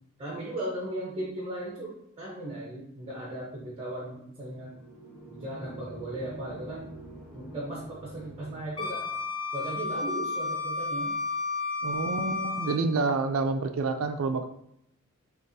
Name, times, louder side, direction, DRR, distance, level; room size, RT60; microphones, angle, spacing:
voice 1, 0.2-4.7 5.3-6.9 7.3-9.1 9.5-11.1, right 1 dB, 25° right, -3 dB, 0.8 m, -37 dB
sound 1, 4.4-9.3, right 1 dB, ahead, 1.2 m, -46 dB
Wind instrument woodwind instrument, 8.8-12.8, left 3 dB, 20° left, 0.4 m, -32 dB
voice 2, 11.8-14.5, right 3 dB, 65° right, 6 dB, 0.4 m, -28 dB
6.5 x 2.5 x 2.7 m, 0.77 s
head